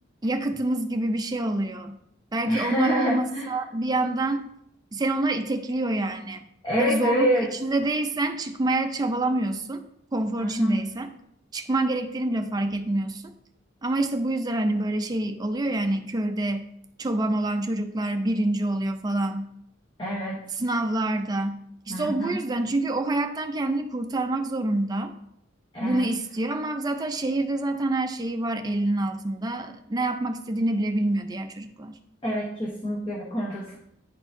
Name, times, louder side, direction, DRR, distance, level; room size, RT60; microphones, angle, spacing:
voice 1, 0.2-2.0 2.3-4.5 4.9-6.5 6.8-7.3 7.6-9.8 10.1-11.1 11.5-13.3 13.8-16.7 17.0-19.5 20.6-25.1 25.8-32.0, right 2 dB, 20° right, 6 dB, 0.4 m, -27 dB
voice 2, 2.5-3.6 6.6-7.5 10.4-10.8 20.0-20.4 21.9-22.4 25.7-26.1 32.2-33.8, equal, 25° left, -4 dB, 0.9 m, -26 dB
9.7 x 4.5 x 2.6 m, 0.77 s
head